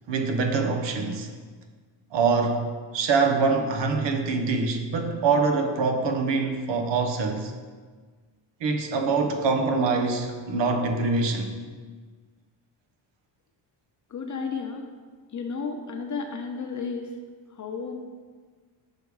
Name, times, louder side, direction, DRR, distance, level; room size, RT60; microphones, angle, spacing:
voice 1, 0.1-1.3 2.1-7.5 8.6-11.5, right 4 dB, 60° right, 4 dB, 0.9 m, -24 dB
voice 2, 14.1-14.9 15.3-17.1 17.5-17.9, left 5 dB, 35° left, 3 dB, 0.9 m, -32 dB
6.6 x 3.5 x 4.8 m, 1.5 s
cardioid pair, 80°, 49 cm